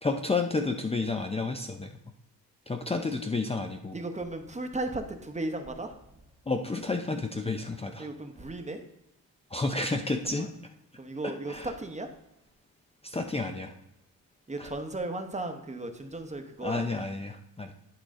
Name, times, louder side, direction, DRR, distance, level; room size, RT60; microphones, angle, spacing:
voice 1, 0.0-1.9 2.7-3.9 6.5-8.1 9.5-10.5 11.5-11.7 13.0-13.7 14.6-14.7 16.6-17.7, left 3 dB, 15° left, 5 dB, 0.6 m, -30 dB
voice 2, 3.9-6.2 8.0-8.8 10.4-10.5 11.0-12.1 14.5-16.8, right 2 dB, 20° right, 5 dB, 1.0 m, -35 dB
11.0 x 4.8 x 3.8 m, 0.84 s
cardioid pair, 95°, 36 cm